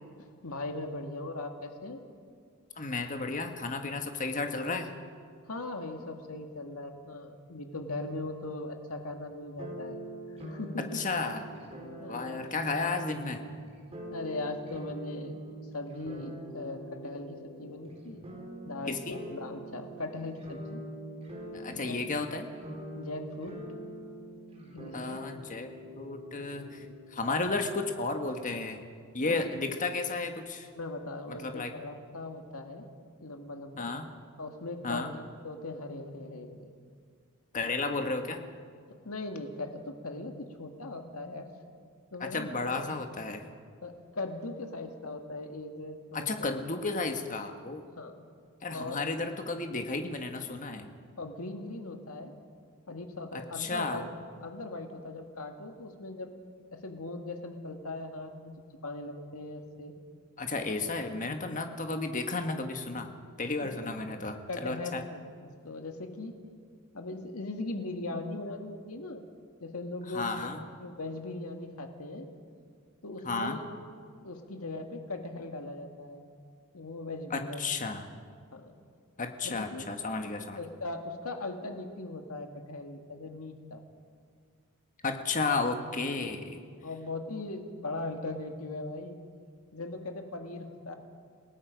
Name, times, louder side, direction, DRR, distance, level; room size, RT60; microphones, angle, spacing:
voice 1, 0.2-2.0 5.5-10.0 10.4-10.8 12.0-12.4 14.1-15.4 15.7-18.3 18.6-20.8 21.7-22.0 23.0-23.6 24.7-25.2 29.3-29.6 30.8-32.9 33.2-33.9 34.4-36.7 39.0-41.5 42.1-42.9 43.8-46.5 48.0-48.1 48.7-49.0 51.2-52.3 52.9-54.1 54.4-56.3 56.7-58.5 58.8-59.9 63.6-63.7 64.5-66.3 66.9-69.2 69.6-70.5 70.8-72.3 73.0-73.6 74.2-76.2 76.7-77.6 78.5-78.7 79.4-79.8 80.6-83.8 86.2-86.3 86.8-89.2 89.7-91.0, left 2 dB, 80° left, 4 dB, 1.9 m, -39 dB
voice 2, 2.8-4.9 10.9-11.4 12.1-13.4 18.9-19.2 21.5-22.5 24.9-25.7 26.0-28.9 29.1-30.7 31.3-31.7 33.8-34.1 34.8-35.1 37.5-38.4 42.2-43.5 46.1-47.8 48.6-50.9 53.3-54.0 60.4-63.1 63.4-65.0 70.1-70.6 73.2-73.6 77.3-78.1 79.2-80.6 85.0-86.6, left 3 dB, 35° left, 5 dB, 1.5 m, -33 dB
sound 1, 9.6-27.4, right 1 dB, 30° right, 4.0 m, -44 dB
27.5 x 18.0 x 5.2 m, 2.1 s
head